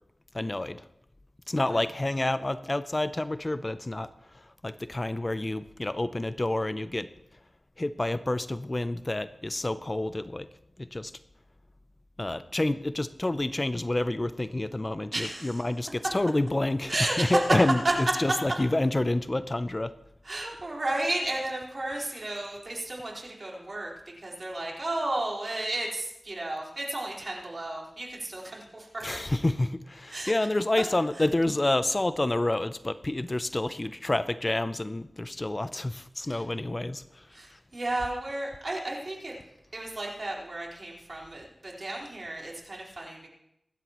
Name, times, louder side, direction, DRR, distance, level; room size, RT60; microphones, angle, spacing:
voice 1, 0.3-0.8 1.5-4.1 4.3-7.1 7.8-10.5 10.8-11.1 12.2-19.9 29.0-37.3, left 2 dB, 30° left, 12 dB, 0.6 m, -28 dB
voice 2, 15.1-15.6 16.9-17.4 20.2-23.9 24.2-29.0 30.1-30.3 36.3-36.4 37.3-39.4 39.7-43.3, right 2 dB, 50° right, -3 dB, 4.4 m, -33 dB
25.5 x 12.5 x 3.1 m, 0.82 s
wide cardioid pair, 70°, 0 cm